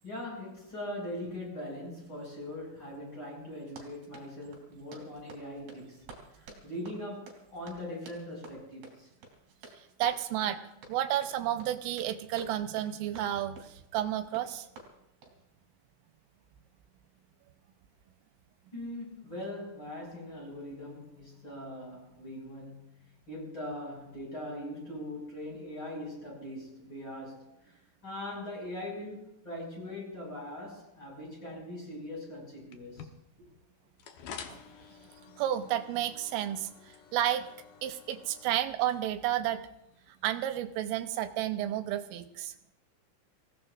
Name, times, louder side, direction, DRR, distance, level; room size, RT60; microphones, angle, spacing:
voice 1, 0.0-9.1 18.7-33.5, left 1 dB, 25° left, 6.6 m, -41 dB
Run, 3.7-15.4, right 2 dB, 55° right, 4.6 m, -52 dB
voice 2, 10.0-10.6 10.9-14.7 34.5-34.6 35.4-36.7 37.1-37.5 37.8-39.6 40.2-42.5, right 12 dB, 85° right, 3.3 m, -31 dB
sound 1, 32.7-40.6, left 7 dB, 85° left, 1.9 m, -51 dB
27.0 x 17.0 x 2.6 m
omnidirectional pair, 5.9 m